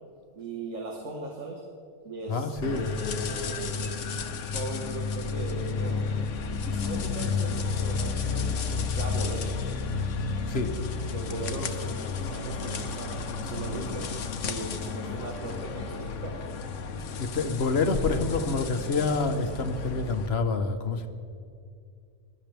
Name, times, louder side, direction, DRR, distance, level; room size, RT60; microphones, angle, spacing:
voice 1, 0.4-1.6 2.0-3.9 4.5-6.0 6.4-9.6 11.1-14.1 14.4-16.4, right 2 dB, 80° right, -1 dB, 1.9 m, -38 dB
voice 2, 2.3-2.8 10.5-10.7 17.2-21.1, left 3 dB, 60° left, 7 dB, 1.2 m, -27 dB
sound 1, 2.6-20.3, left 5 dB, 80° left, 1.2 m, -32 dB
21.5 x 12.0 x 3.4 m, 2.4 s
omnidirectional pair, 1.3 m